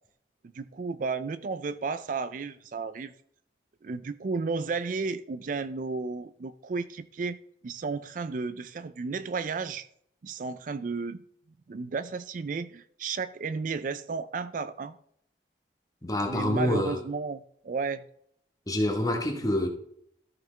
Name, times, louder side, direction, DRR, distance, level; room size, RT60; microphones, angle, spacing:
voice 1, 0.5-3.1 3.8-7.4 7.6-9.9 10.2-11.2 11.7-14.9 16.2-18.0, right 4 dB, 50° right, 0.4 m, -33 dB
voice 2, 16.0-17.0 18.7-19.7, left 1 dB, 20° left, 1.3 m, -27 dB
13.0 x 5.8 x 3.4 m
head